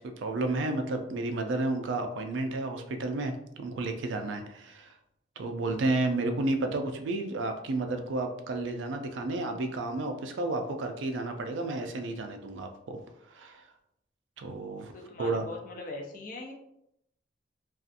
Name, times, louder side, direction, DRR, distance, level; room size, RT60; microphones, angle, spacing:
voice 1, 0.0-4.9 5.4-13.0 13.3-13.6 14.4-14.9 15.2-15.5, right 2 dB, 80° right, 6 dB, 0.4 m, -32 dB
voice 2, 14.9-16.5, left 2 dB, 45° left, 1 dB, 0.5 m, -41 dB
2.6 x 2.3 x 2.4 m, 0.77 s
head